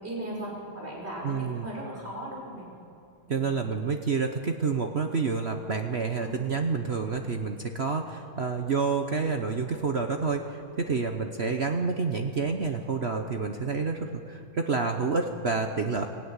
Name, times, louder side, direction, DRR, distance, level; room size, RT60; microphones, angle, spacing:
voice 1, 0.0-2.7 3.2-3.6 6.1-6.3, right 1 dB, 25° right, -3 dB, 5.9 m, -38 dB
voice 2, 1.2-1.7 3.3-16.1, right 4 dB, 50° right, 5 dB, 0.7 m, -28 dB
24.0 x 16.0 x 9.7 m, 2.7 s
omnidirectional pair, 2.4 m